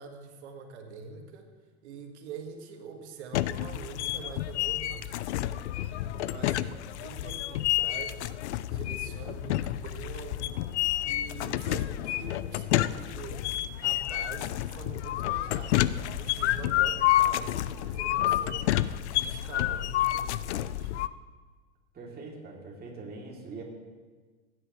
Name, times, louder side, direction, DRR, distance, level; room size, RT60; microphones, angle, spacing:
voice 1, 0.0-1.5 1.8-5.2 5.5-5.7 6.0-8.4 8.7-10.7 11.0-13.5 13.8-18.8 19.1-20.9, right 5 dB, 80° right, 4 dB, 2.0 m, -45 dB
sound 1, 3.3-21.1, left 14 dB, 80° left, 0.5 m, -29 dB
voice 2, 21.9-23.6, right 3 dB, 30° right, -1 dB, 2.9 m, -42 dB
17.0 x 9.7 x 3.2 m, 1.4 s
hypercardioid pair, 110°, 33 cm